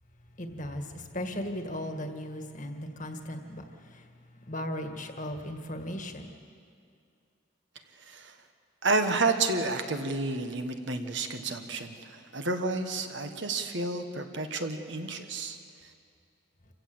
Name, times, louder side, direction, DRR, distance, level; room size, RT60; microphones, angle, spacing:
voice 1, 0.4-3.6 3.9-4.0 4.5-6.3, left 1 dB, 40° left, 5 dB, 1.7 m, -36 dB
voice 2, 8.8-15.6, right 3 dB, 60° right, 6 dB, 1.5 m, -30 dB
27.5 x 16.0 x 7.8 m, 2.4 s
head